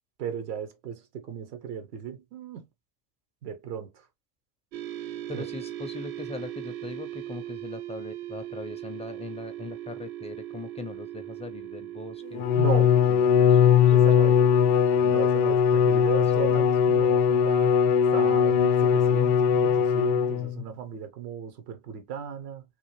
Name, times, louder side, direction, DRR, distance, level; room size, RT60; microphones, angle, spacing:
voice 1, 0.2-2.7 3.4-3.9 5.3-5.4 12.5-12.9 13.9-14.4 15.1-17.8 18.1-22.6, right 8 dB, 80° right, 1.0 m, -35 dB
sound 1, 4.7-15.0, right 13 dB, 65° right, 0.6 m, -39 dB
voice 2, 5.3-12.4, left 4 dB, 15° left, 0.4 m, -41 dB
Bowed string instrument, 12.3-20.6, left 8 dB, 60° left, 0.6 m, -20 dB
3.2 x 2.2 x 3.0 m
hypercardioid pair, 80°, 46 cm